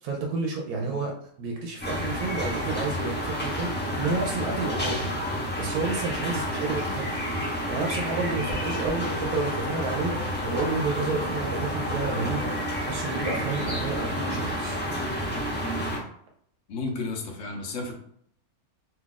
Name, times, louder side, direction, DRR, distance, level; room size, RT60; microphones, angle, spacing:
voice 1, 0.0-5.1 5.6-7.1 7.7-12.5 12.8-14.8, right 3 dB, 85° right, 1 dB, 1.1 m, -30 dB
sound 1, 1.8-16.0, equal, 10° left, 0.7 m, -30 dB
sound 2, 8.5-12.9, right 1 dB, 60° right, 1.1 m, -38 dB
voice 2, 16.7-17.9, left 3 dB, 60° left, 1 dB, 1.0 m, -32 dB
3.0 x 2.4 x 3.8 m, 0.66 s
omnidirectional pair, 1.6 m